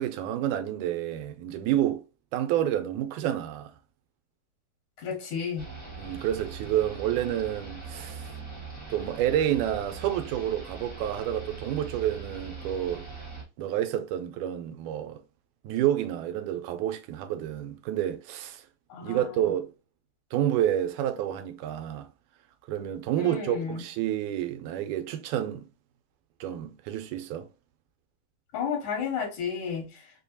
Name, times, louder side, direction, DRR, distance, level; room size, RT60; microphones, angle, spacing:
voice 1, 0.0-2.0 2.3-3.7 6.0-8.3 8.9-13.1 13.6-15.2 15.6-18.7 19.0-19.7 20.3-22.1 22.7-25.7 26.4-27.5, right 11 dB, 90° right, 2.0 m, -29 dB
voice 2, 5.0-5.6 18.9-19.5 23.2-23.8 28.5-30.0, left 6 dB, 80° left, 2.5 m, -32 dB
sound 1, 5.6-13.4, right 4 dB, 5° left, 0.6 m, -41 dB
5.3 x 2.2 x 2.6 m
omnidirectional pair, 3.4 m